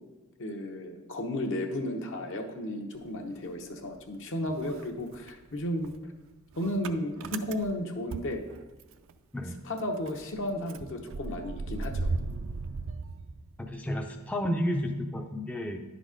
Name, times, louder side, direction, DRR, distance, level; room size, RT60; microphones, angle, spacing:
voice 1, 0.4-6.1 6.6-8.4 9.6-12.1, left 1 dB, 60° left, 3 dB, 0.9 m, -34 dB
Motor vehicle (road) / Engine starting, 3.0-4.2 4.5-9.1 9.4-9.5 9.8-13.9, right 3 dB, 65° right, 0.4 m, -37 dB
voice 2, 13.6-15.8, equal, 5° left, 3 dB, 0.4 m, -31 dB
10.5 x 4.1 x 5.0 m, 1.2 s
head